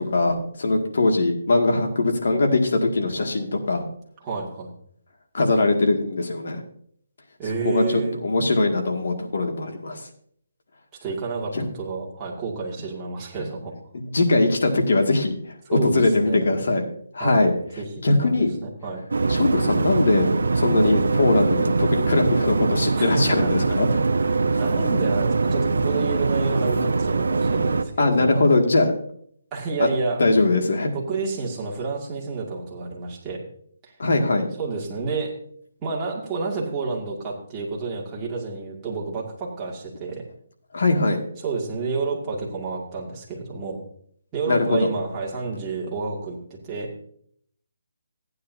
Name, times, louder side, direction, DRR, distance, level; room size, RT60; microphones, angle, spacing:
voice 1, 0.0-3.9 5.3-6.6 7.6-10.0 11.5-11.7 13.9-15.4 15.7-16.8 17.1-17.5 18.0-18.5 19.3-20.3 20.5-23.9 28.0-28.9 29.8-29.9 30.2-30.9 34.0-34.5 40.7-41.2 44.5-44.8, left 2 dB, 70° left, 2 dB, 2.1 m, -21 dB
voice 2, 4.2-4.7 7.4-8.3 11.0-13.7 15.7-16.5 17.2-17.9 18.2-19.0 22.9-23.5 23.8-28.5 29.5-30.2 30.9-33.4 33.8-33.9 34.6-35.3 35.8-40.2 41.4-43.8 44.3-47.0, right 4 dB, 15° right, -4 dB, 2.2 m, -30 dB
sound 1, 19.1-27.8, right 3 dB, 85° right, 0.8 m, -22 dB
15.0 x 9.3 x 2.7 m, 0.65 s
hypercardioid pair, 165°, 0 cm